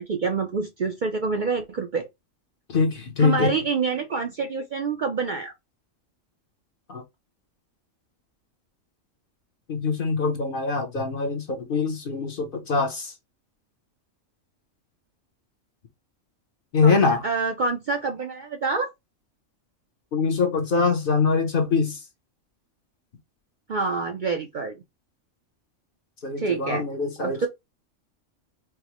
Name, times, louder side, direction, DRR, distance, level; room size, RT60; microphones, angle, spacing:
voice 1, 0.0-2.1 3.2-5.5 16.8-18.9 23.7-24.7 26.4-26.9 27.2-27.5, right 4 dB, 55° right, 0.5 m, -27 dB
voice 2, 2.7-3.5 6.9-7.0 9.7-13.1 16.7-17.2 20.1-22.0 26.2-27.5, left 4 dB, 50° left, 0.8 m, -23 dB
4.6 x 2.1 x 2.9 m
omnidirectional pair, 1.3 m